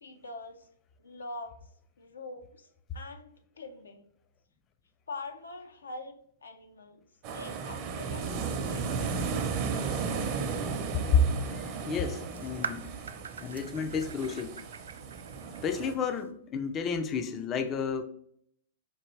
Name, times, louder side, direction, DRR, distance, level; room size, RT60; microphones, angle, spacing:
voice 1, 0.0-0.7 1.0-1.5 2.0-2.7 2.9-4.0 5.1-6.1 6.4-7.0 7.3-8.9, left 3 dB, 90° left, 7 dB, 0.5 m, -44 dB
sound 1, 7.2-15.9, right 5 dB, 40° right, 0.6 m, -35 dB
voice 2, 11.5-12.9 13.4-14.5 15.6-18.0, left 5 dB, 25° left, 8 dB, 0.3 m, -30 dB
sound 2, 12.3-16.3, right 5 dB, 85° right, 0.3 m, -43 dB
4.5 x 2.5 x 3.1 m, 0.67 s
hypercardioid pair, 125°, 0 cm